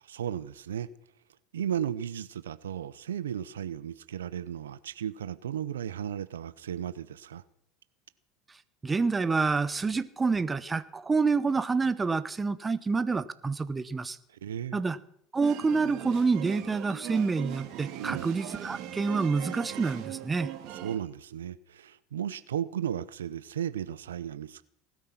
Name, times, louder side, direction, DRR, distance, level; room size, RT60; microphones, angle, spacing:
voice 1, 0.0-0.9 1.5-7.4 14.3-14.8 18.0-18.3 20.7-24.6, right 9 dB, 90° right, 0.6 m, -35 dB
voice 2, 8.8-14.2 14.7-15.0 15.3-20.5, right 4 dB, 20° right, 1.1 m, -28 dB
sound 1, 15.4-21.0, right 13 dB, 60° right, 2.2 m, -40 dB
19.0 x 13.0 x 5.8 m
hypercardioid pair, 85°, 0 cm